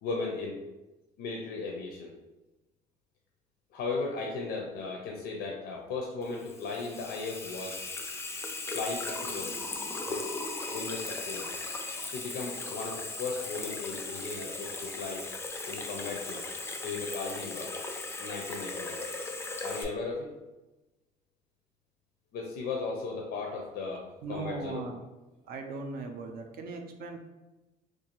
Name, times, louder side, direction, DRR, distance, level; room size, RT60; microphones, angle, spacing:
voice 1, 0.0-0.6 1.2-2.1 3.7-7.8 8.7-9.6 10.0-10.3 10.7-11.5 12.0-15.2 15.7-16.4 16.8-17.7 18.2-19.0 19.6-20.3 22.3-24.8, left 4 dB, 75° left, 0 dB, 0.5 m, -36 dB
Water tap faucet / Sink (filling or washing), 6.2-19.8, left 3 dB, 15° left, 0.3 m, -38 dB
voice 2, 24.2-25.1 25.4-27.2, right 3 dB, 60° right, 4 dB, 0.4 m, -38 dB
2.6 x 2.3 x 2.9 m, 1.1 s
cardioid pair, 110°, 17 cm